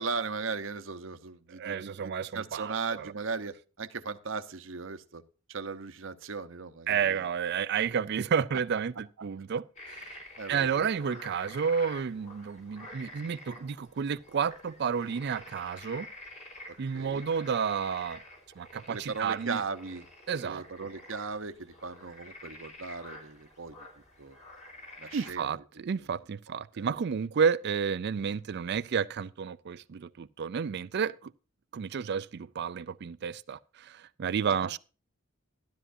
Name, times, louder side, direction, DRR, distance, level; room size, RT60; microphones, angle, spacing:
voice 1, 0.0-5.2 5.5-7.2 9.2-9.3 10.4-10.9 16.9-17.3 18.9-20.1 20.4-23.8 24.2-24.4 25.0-25.6 26.0-26.1 26.7-26.9 34.5-34.7, right 4 dB, 70° right, 0.9 m, -37 dB
voice 2, 1.5-3.1 6.9-10.1 10.5-16.1 16.8-18.2 18.6-19.6 20.3-20.6 25.1-31.3 31.7-34.8, right 6 dB, 55° right, 0.4 m, -31 dB
sound 1, 9.8-25.3, left 1 dB, 35° left, 3.9 m, -49 dB
12.5 x 12.5 x 2.6 m
head